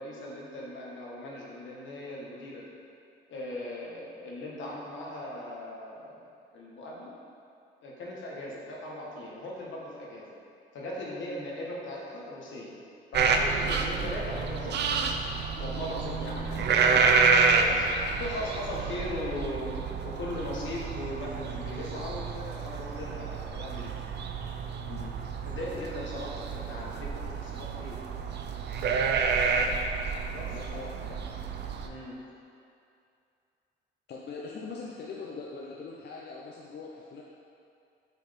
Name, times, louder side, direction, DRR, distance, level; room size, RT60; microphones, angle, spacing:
voice 1, 0.0-2.6 3.3-6.2 6.5-7.1 7.8-10.3 10.7-12.8 13.1-15.1 15.6-17.2 17.6-17.9 18.2-19.8 20.0-23.9 25.4-28.0 30.3-30.6 31.8-32.1, left 1 dB, 75° left, -4 dB, 1.4 m, -38 dB
sound 1, 13.1-31.9, right 5 dB, 60° right, 0.6 m, -29 dB
voice 2, 24.8-25.1 30.5-31.2 34.1-37.2, left 4 dB, 55° left, -3 dB, 0.7 m, -42 dB
7.9 x 4.6 x 3.6 m, 2.5 s
cardioid pair, 90°, 20 cm